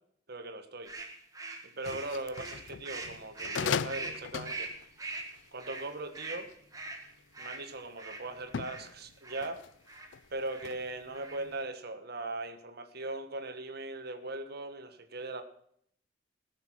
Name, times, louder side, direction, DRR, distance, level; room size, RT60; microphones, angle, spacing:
voice 1, 0.3-0.9 1.6-4.7 5.5-6.5 7.4-9.6 10.3-15.4, right 2 dB, 55° right, 8 dB, 1.5 m, -39 dB
sound 1, 0.9-8.9 9.2-9.5 9.9-10.1 10.5-10.8 11.1-11.6, right 3 dB, 20° right, 1.8 m, -43 dB
sound 2, 1.8-6.8 7.4-7.9 8.4-11.1 11.4-11.6, left 7 dB, 70° left, 0.4 m, -39 dB
18.0 x 6.7 x 6.3 m, 0.66 s
head